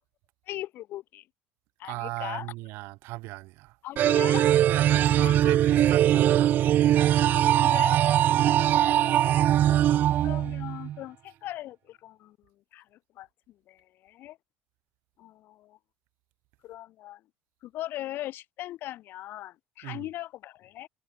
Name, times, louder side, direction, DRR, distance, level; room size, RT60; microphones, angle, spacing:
voice 1, 0.5-1.2 1.8-2.5 3.8-4.5 5.2-5.6 7.3-8.0 9.7-12.4 12.7-13.3 13.7-14.4 15.2-15.8 16.6-17.2 17.6-20.9, left 14 dB, 60° left, 3.3 m, -39 dB
voice 2, 1.8-3.8 4.4-6.5 8.3-8.8 19.8-20.1, right 21 dB, 70° right, 3.9 m, -37 dB
sound 1, 4.0-11.0, right 11 dB, 50° right, 0.4 m, -21 dB
supercardioid pair, 95°, 4 cm